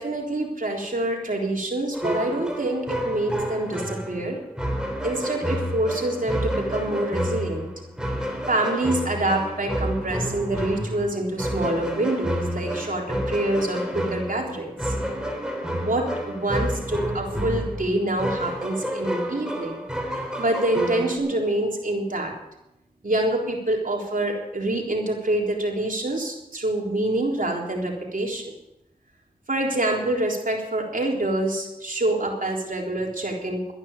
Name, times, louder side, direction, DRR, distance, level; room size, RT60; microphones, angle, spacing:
voice 1, 0.0-4.4 5.0-7.7 8.5-15.0 15.7-19.8 20.4-22.3 23.0-28.5 29.5-33.7, right 1 dB, 60° right, 0 dB, 3.8 m, -26 dB
sound 1, 1.9-21.2, equal, 5° right, 3.5 m, -29 dB
13.0 x 10.5 x 7.2 m, 0.87 s
cardioid pair, 40°, 16 cm